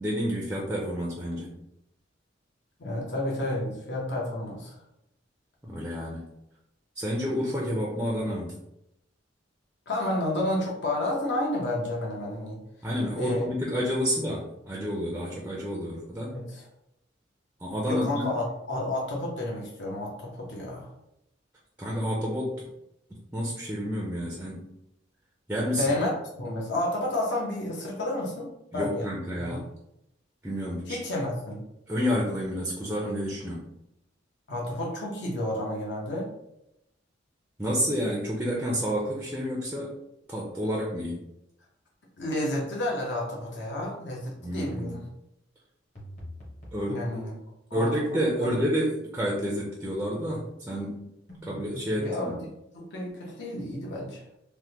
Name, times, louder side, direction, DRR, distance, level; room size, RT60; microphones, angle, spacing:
voice 1, 0.0-1.5 5.6-6.2 7.0-8.5 12.8-16.3 17.6-18.3 21.8-22.7 23.3-24.6 25.5-25.8 28.7-29.7 30.4-31.0 31.9-33.6 37.6-39.9 40.3-41.2 44.4-44.9 46.7-47.2 47.7-51.0 51.4-52.4, equal, 10° right, -4 dB, 0.4 m, -29 dB
voice 2, 2.8-4.7 9.9-12.6 13.2-13.5 16.2-16.6 17.9-20.9 25.8-26.1 26.4-29.1 29.4-29.6 30.9-31.6 34.5-36.3 42.2-45.1 46.9-47.3 47.7-48.6 52.0-52.4 52.7-54.2, left 1 dB, 65° left, -2 dB, 0.8 m, -31 dB
sound 1, 46.0-46.9 51.3-52.2, left 1 dB, 40° left, 0.9 m, -43 dB
3.3 x 2.1 x 2.8 m, 0.84 s
head